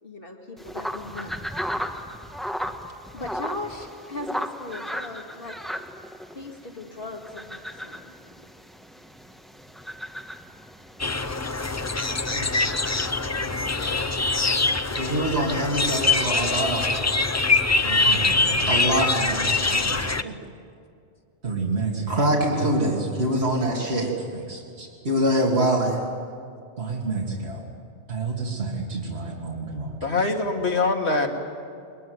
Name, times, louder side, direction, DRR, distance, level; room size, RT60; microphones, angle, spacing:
voice 1, 0.0-1.4 3.1-5.6 6.3-8.5, left 2 dB, 55° left, 2 dB, 2.4 m, -38 dB
sound 1, 0.6-13.6, equal, ahead, 1.3 m, -36 dB
sound 2, 11.0-20.2, left 3 dB, 25° left, 0.4 m, -23 dB
voice 2, 13.4-14.1 30.0-31.3, left 3 dB, 75° left, 2 dB, 2.4 m, -25 dB
voice 3, 15.0-17.4 17.8-20.4 21.4-26.0 26.8-27.6 28.1-30.0, right 1 dB, 70° right, -3 dB, 2.9 m, -26 dB
22.0 x 21.5 x 9.6 m, 2.4 s
omnidirectional pair, 1.1 m